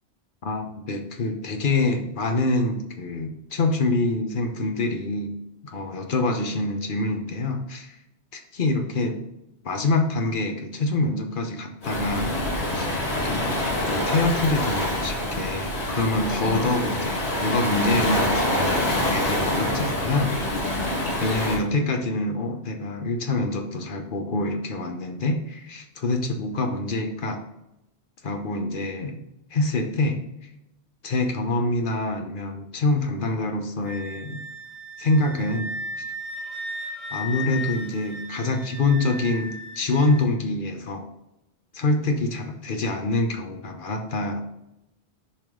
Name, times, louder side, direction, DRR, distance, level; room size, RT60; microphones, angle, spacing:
voice 1, 0.4-5.4 5.6-8.0 8.3-9.2 9.6-12.3 12.7-12.9 13.2-13.5 13.9-18.7 19.1-20.8 21.2-27.4 28.2-29.2 29.5-30.2 31.0-34.4 35.0-36.0 37.1-41.1 41.7-44.4, left 2 dB, 50° left, 5 dB, 1.1 m, -26 dB
Waves surf, 11.8-21.6, left 1 dB, 75° left, 2.1 m, -26 dB
Wind instrument woodwind instrument, 33.8-40.2, left 1 dB, ahead, 2.6 m, -36 dB
7.2 x 5.1 x 3.8 m, 0.87 s
omnidirectional pair, 1.1 m